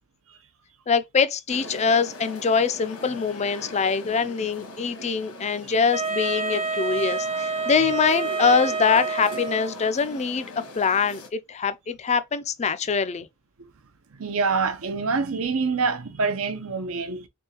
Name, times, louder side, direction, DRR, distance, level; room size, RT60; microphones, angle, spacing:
voice 1, 0.9-13.3, left 5 dB, 30° left, 0.4 m, -24 dB
sound 1, 1.5-11.3, left 1 dB, 80° left, 1.3 m, -41 dB
Wind instrument woodwind instrument, 5.9-9.8, right 4 dB, 40° right, 1.0 m, -28 dB
voice 2, 14.1-17.3, right 4 dB, 65° right, 0.7 m, -26 dB
3.7 x 3.5 x 2.9 m
head